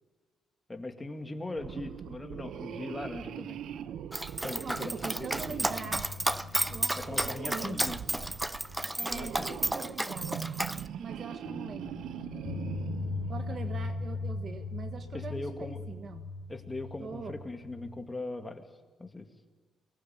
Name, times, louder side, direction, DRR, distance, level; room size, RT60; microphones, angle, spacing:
voice 1, 0.7-3.6 4.4-5.3 7.0-8.0 9.0-10.0 15.1-15.8 16.5-18.6 19.0-19.3, left 2 dB, 15° left, 6 dB, 2.4 m, -40 dB
sound 1, 1.5-14.0, right 9 dB, 75° right, 0.9 m, -42 dB
Dog, 4.1-10.8, right 1 dB, 10° right, 0.7 m, -32 dB
sound 2, 4.4-9.8 10.1-10.3 11.4-18.0, left 3 dB, 75° left, 5.6 m, -40 dB
voice 2, 4.6-6.1 6.7-7.9 9.0-10.4 11.0-12.0 13.3-16.3 17.0-17.4, right 5 dB, 50° right, 8 dB, 1.6 m, -42 dB
23.5 x 20.0 x 9.3 m, 1.4 s
cardioid pair, 90°, 0 cm